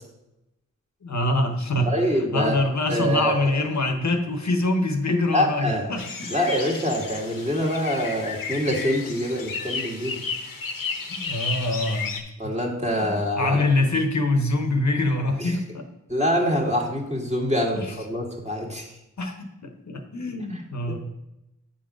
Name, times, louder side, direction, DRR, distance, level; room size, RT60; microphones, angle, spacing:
voice 1, 1.0-1.9 2.3-6.3 11.1-12.5 13.1-15.8 17.8-17.9 19.2-21.0, left 2 dB, 55° left, 5 dB, 1.0 m, -25 dB
voice 2, 1.9-2.6 2.9-3.6 5.3-5.9 6.3-10.2 12.4-13.6 15.4-15.6 16.1-18.9 20.5-20.6 20.9-21.0, equal, 20° right, -1 dB, 2.0 m, -25 dB
sound 1, 6.0-12.2, left 4 dB, 80° left, 1.0 m, -33 dB
8.2 x 3.9 x 5.0 m, 0.91 s
cardioid pair, 50°, 33 cm